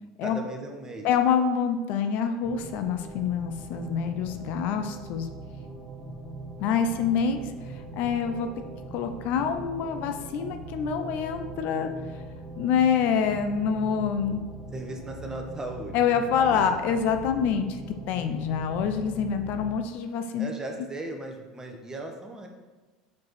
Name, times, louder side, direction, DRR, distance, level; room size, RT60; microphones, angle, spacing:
voice 1, 0.2-1.1 14.7-16.8 20.4-22.5, right 2 dB, 20° right, 2 dB, 1.1 m, -37 dB
voice 2, 1.0-5.3 6.6-7.4 7.7-8.5 8.9-11.9 12.6-14.4 15.9-20.5, left 7 dB, 60° left, 7 dB, 0.5 m, -26 dB
sound 1, 2.4-19.8, right 2 dB, 10° left, 1.5 m, -41 dB
4.7 x 4.7 x 4.2 m, 1.3 s
hypercardioid pair, 80°, 3 cm